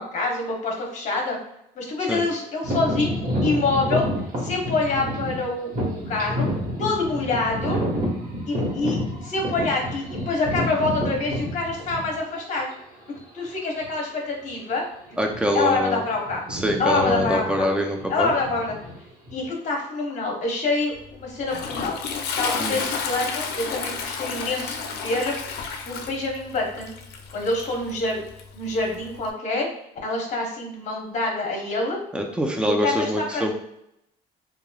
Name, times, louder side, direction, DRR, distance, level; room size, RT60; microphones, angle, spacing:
voice 1, 0.0-1.4 1.7-3.1 3.4-4.1 4.4-6.5 6.8-7.8 8.5-12.7 13.3-14.8 15.5-16.5 16.8-17.7 18.1-18.7 19.3-22.0 22.4-25.4 25.8-26.9 27.3-28.2 28.5-29.7 30.0-32.0 32.6-33.4, left 3 dB, 45° left, 0 dB, 0.9 m, -26 dB
sound 1, 2.6-12.4 13.1-13.2 13.8-14.0 14.3-14.6 15.2-15.8 16.0-19.4, equal, 45° right, 1.2 m, -29 dB
voice 2, 15.2-16.0 16.5-18.3 22.6-22.8 32.1-33.5, equal, 5° right, 2 dB, 0.4 m, -24 dB
Toilet flush, 21.0-29.3, left 5 dB, 70° left, 0.5 m, -32 dB
3.0 x 2.4 x 2.2 m, 0.79 s
cardioid pair, 110°, 17 cm